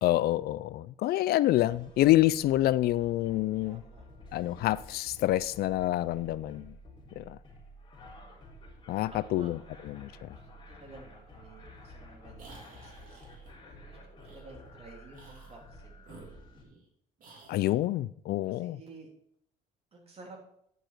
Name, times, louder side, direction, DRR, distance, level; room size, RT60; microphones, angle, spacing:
voice 1, 0.0-3.8 4.3-6.7 7.2-7.4 8.9-9.6 9.8-10.4 17.5-18.8, left 15 dB, 65° left, 0.4 m, -27 dB
sound 1, 1.7-16.6, equal, 30° left, 3.9 m, -51 dB
voice 2, 3.6-4.5 9.1-9.8 10.1-13.2 13.6-14.0 14.3-16.0 18.4-19.1 19.9-20.4, right 3 dB, 35° right, 3.4 m, -53 dB
sound 2, 12.4-13.5 14.2-14.4 15.1-15.6 16.0-16.9 17.2-17.8, right 3 dB, 55° right, 3.2 m, -53 dB
9.8 x 6.8 x 4.6 m
cardioid pair, 110°, 17 cm